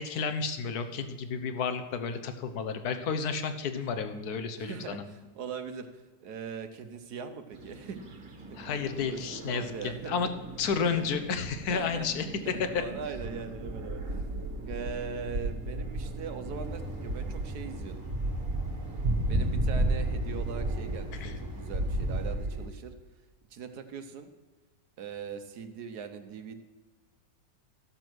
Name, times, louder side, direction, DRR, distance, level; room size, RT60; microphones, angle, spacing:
voice 1, 0.0-5.0 8.5-9.7 10.1-10.3 10.6-12.3 21.2-21.3, left 5 dB, 60° left, 9 dB, 1.3 m, -31 dB
voice 2, 4.6-5.9 6.2-8.0 8.5-8.6 9.0-10.2 10.9-11.0 11.7-12.1 12.4-14.0 14.6-18.1 19.3-22.9 23.5-24.3 25.0-26.5, right 6 dB, 65° right, 8 dB, 1.2 m, -40 dB
sound 1, 7.5-22.7, right 1 dB, 45° right, 1.7 m, -34 dB
sound 2, 16.4-22.4, equal, 10° right, 1.8 m, -43 dB
13.0 x 6.9 x 6.1 m, 1.3 s
omnidirectional pair, 2.0 m